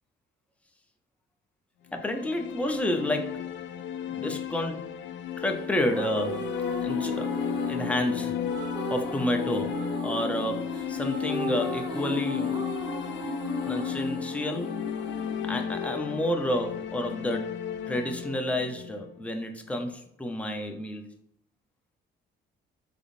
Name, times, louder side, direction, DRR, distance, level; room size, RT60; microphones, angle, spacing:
sound 1, 1.9-19.9, left 10 dB, 70° left, 0.4 m, -34 dB
voice 1, 1.9-3.5 4.0-5.0 5.4-6.5 6.8-7.3 7.7-9.8 10.0-12.7 13.6-14.8 15.5-17.6 17.9-21.1, left 1 dB, 5° left, 4 dB, 0.6 m, -30 dB
sound 2, 5.6-16.6, right 2 dB, 20° right, 0.9 m, -36 dB
3.9 x 3.4 x 2.5 m, 0.74 s
cardioid pair, 90°, 20 cm